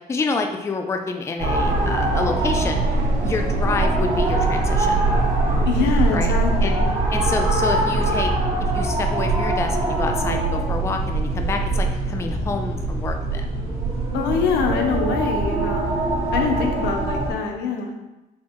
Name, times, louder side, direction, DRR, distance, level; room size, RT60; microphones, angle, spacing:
voice 1, 0.1-2.8 3.2-5.0 6.1-6.3 6.6-6.7 7.1-8.3 8.7-13.4, left 4 dB, 15° left, 4 dB, 0.4 m, -28 dB
sound 1, 1.4-17.3, right 2 dB, 35° right, 1.2 m, -22 dB
sound 2, 1.6-6.7, right 3 dB, 50° right, 0.6 m, -31 dB
voice 2, 5.6-6.9 14.1-15.9 16.3-17.9, left 5 dB, 85° left, 3 dB, 0.7 m, -24 dB
4.4 x 2.3 x 4.6 m, 1.0 s
cardioid pair, 110°, 17 cm